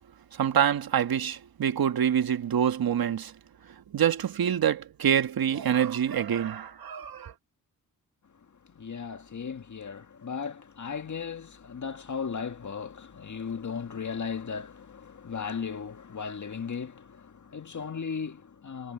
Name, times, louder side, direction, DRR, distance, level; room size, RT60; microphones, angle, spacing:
voice 1, 0.4-3.3 3.9-7.3, right 9 dB, 80° right, 1.7 m, -26 dB
voice 2, 8.5-18.9, left 6 dB, 55° left, 2.0 m, -36 dB
cardioid pair, 55°, 36 cm